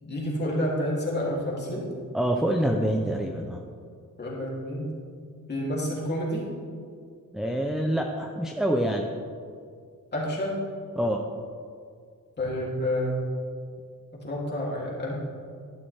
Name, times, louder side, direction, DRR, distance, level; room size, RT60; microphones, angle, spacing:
voice 1, 0.0-1.9 4.2-4.9 5.5-6.5 10.1-10.6 12.4-13.2 14.2-15.1, equal, 30° left, -5 dB, 3.0 m, -29 dB
voice 2, 2.1-3.6 7.3-9.1 11.0-11.3, right 1 dB, ahead, 2 dB, 0.6 m, -26 dB
12.0 x 11.5 x 3.5 m, 2.2 s
wide cardioid pair, 140°, 33 cm